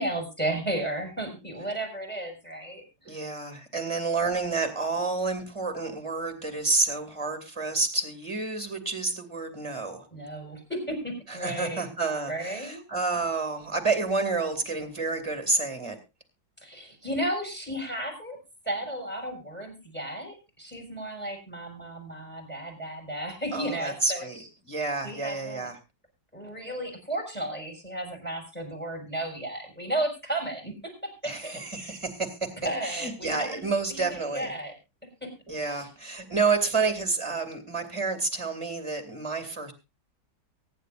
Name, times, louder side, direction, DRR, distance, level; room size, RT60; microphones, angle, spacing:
voice 1, 0.0-3.2 10.1-11.8 12.3-12.8 16.6-18.4 18.6-24.5 25.0-25.7 26.3-32.0 32.6-33.6 33.9-34.7 35.2-35.3 35.7-35.9, right 1 dB, 5° left, 4 dB, 5.6 m, -34 dB
voice 2, 3.0-10.1 11.3-16.0 23.5-25.8 31.2-32.5 32.8-34.5 35.5-39.7, right 4 dB, 15° right, 7 dB, 2.5 m, -29 dB
23.5 x 10.5 x 2.6 m, 0.27 s
omnidirectional pair, 1.9 m